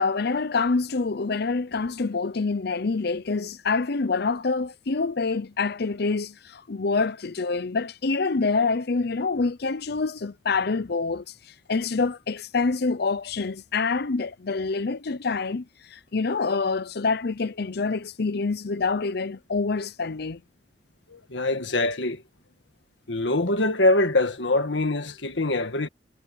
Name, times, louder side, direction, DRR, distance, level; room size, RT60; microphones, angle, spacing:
voice 1, 0.0-11.2 11.7-15.6 15.9-20.4, left 4 dB, 65° left, 0.7 m, -26 dB
voice 2, 21.1-22.2 23.1-25.9, left 2 dB, 90° left, 1.8 m, -24 dB
head